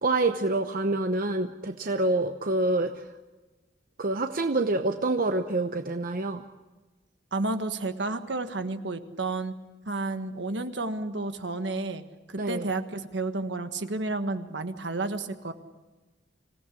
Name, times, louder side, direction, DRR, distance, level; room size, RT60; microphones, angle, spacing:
voice 1, 0.0-2.9 4.0-6.4 12.4-12.7, right 2 dB, 50° right, 6 dB, 0.9 m, -26 dB
voice 2, 7.3-9.5 9.9-12.0 12.3-15.5, right 2 dB, 70° right, 8 dB, 1.5 m, -31 dB
26.0 x 17.0 x 8.5 m, 1.2 s
head